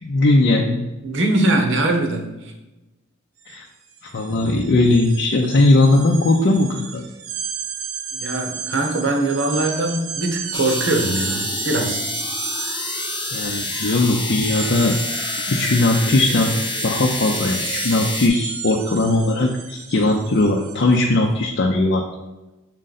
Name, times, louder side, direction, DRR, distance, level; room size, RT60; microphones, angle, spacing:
voice 1, 0.0-0.8 3.5-3.7 4.0-7.0 13.3-15.0 15.5-16.5 16.8-22.0, left 2 dB, 50° left, 0 dB, 0.5 m, -18 dB
voice 2, 1.0-2.5 8.1-12.0, right 2 dB, 60° right, 3 dB, 1.0 m, -22 dB
sound 1, 3.4-3.6 3.9-21.1, right 7 dB, 80° right, 0.6 m, -33 dB
sound 2, 10.5-18.3, left 3 dB, 20° left, 0.8 m, -28 dB
6.4 x 3.8 x 4.1 m, 1.0 s
head